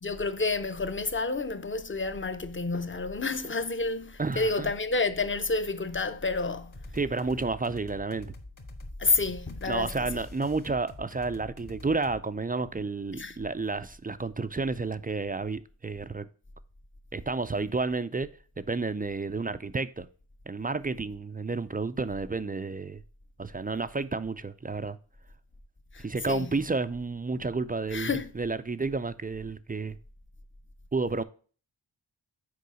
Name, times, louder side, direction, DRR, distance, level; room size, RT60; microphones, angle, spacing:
voice 1, 0.0-6.8 9.0-10.2 13.1-13.4 25.9-26.6 27.9-28.3, left 3 dB, 25° left, 0.7 m, -30 dB
voice 2, 4.2-4.7 6.9-8.3 9.7-16.3 17.1-18.3 18.6-20.1 20.5-23.0 23.4-25.0 26.0-30.0 30.9-31.2, right 3 dB, 20° right, 0.4 m, -31 dB
sound 1, 6.7-12.2, left 2 dB, 40° left, 1.6 m, -46 dB
6.8 x 4.7 x 4.9 m
wide cardioid pair, 75°, 49 cm